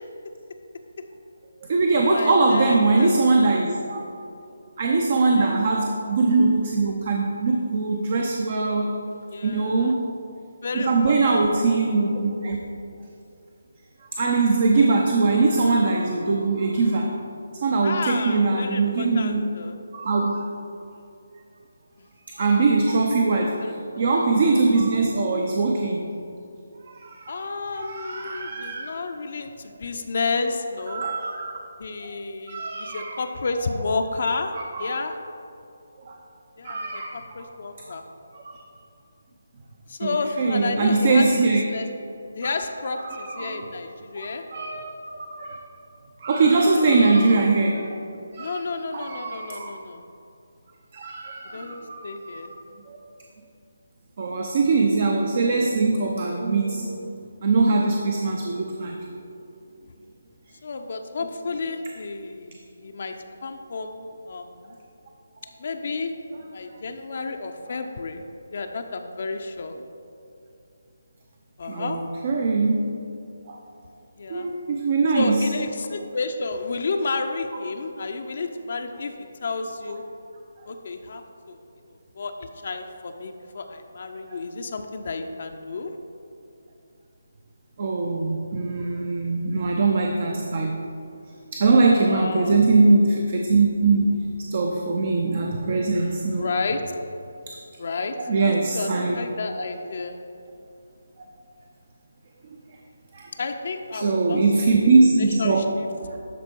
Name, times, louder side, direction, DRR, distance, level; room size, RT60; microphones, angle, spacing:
voice 1, 1.6-4.0 4.8-9.0 9.4-10.1 10.7-12.6 14.2-17.2 17.6-19.5 19.9-20.4 22.4-23.6 23.9-26.1 26.9-28.9 30.9-31.5 32.5-33.2 34.5-34.9 36.0-36.2 36.6-37.5 37.9-38.0 38.3-38.6 40.0-41.6 42.4-42.5 43.0-43.7 44.2-45.6 46.2-47.9 48.3-48.6 48.9-49.7 50.9-52.6 52.9-53.0 54.2-57.1 57.4-59.0 71.7-72.9 73.5-73.6 74.3-75.4 84.3-84.4 87.8-90.8 91.5-94.1 94.5-96.5 98.2-99.2 99.6-99.7 103.1-103.3 103.9-105.7 106.0-106.2, right 3 dB, 50° right, 1 dB, 0.7 m, -22 dB
voice 2, 2.1-3.2 5.3-5.6 9.3-10.0 10.6-11.8 17.8-19.8 22.0-22.1 23.3-23.8 24.1-24.2 27.3-31.0 31.8-34.5 34.8-35.1 36.6-38.0 39.9-41.9 42.3-44.4 46.7-46.8 47.4-47.5 48.4-50.0 51.5-52.5 54.3-54.5 60.6-63.1 63.4-64.8 65.6-66.1 66.5-68.2 68.5-69.7 71.6-72.0 74.2-74.5 75.1-79.1 79.4-80.0 80.7-81.2 81.5-81.6 82.2-86.0 92.0-92.6 96.3-96.8 97.8-100.2 103.4-104.4 105.2-105.6, left 3 dB, 55° left, 5 dB, 0.6 m, -31 dB
12.0 x 4.4 x 4.5 m, 2.6 s
figure-of-eight pair, 155°, 0 cm